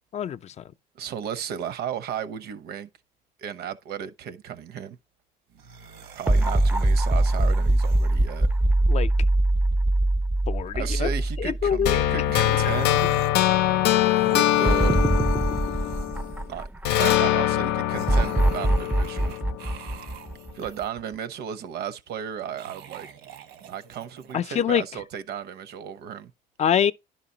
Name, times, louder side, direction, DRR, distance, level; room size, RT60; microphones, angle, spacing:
voice 1, 0.1-0.7 8.9-9.1 10.5-11.1 11.4-12.0 24.3-24.8 26.6-26.9, left 8 dB, 40° left, 0.5 m, -25 dB
voice 2, 0.9-2.9 3.4-5.0 6.1-8.5 10.7-13.1 14.2-15.1 16.5-19.3 20.5-23.1 23.6-26.3, right 8 dB, 70° right, 0.8 m, -34 dB
sound 1, 5.5-8.6 12.2-13.3 13.8-16.6 17.9-20.9 22.4-24.3, right 7 dB, 90° right, 1.3 m, -44 dB
sound 2, 6.3-12.6 13.0-13.1 14.6-17.1 18.1-20.8, right 1 dB, 10° right, 0.5 m, -23 dB
sound 3, 11.9-16.4 16.9-19.9, left 14 dB, 85° left, 0.6 m, -23 dB
10.5 x 5.7 x 2.8 m
cardioid pair, 110°, 17 cm